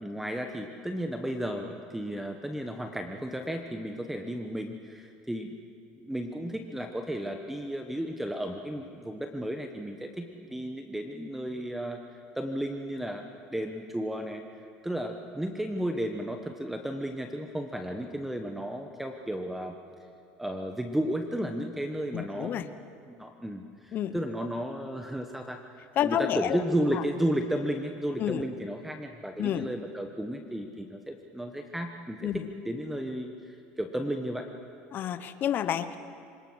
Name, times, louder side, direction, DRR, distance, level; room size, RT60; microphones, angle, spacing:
voice 1, 0.0-5.6 6.0-12.0 12.3-14.4 14.8-19.7 20.4-22.7 23.1-25.6 26.0-34.5, equal, 5° right, 4 dB, 1.3 m, -33 dB
voice 2, 22.1-22.6 23.9-24.2 26.0-26.6 26.9-27.0 28.2-28.4 29.4-29.7 32.2-32.5 34.9-36.0, left 10 dB, 50° left, 12 dB, 0.9 m, -29 dB
25.5 x 18.5 x 6.3 m, 2.4 s
supercardioid pair, 100°, 4 cm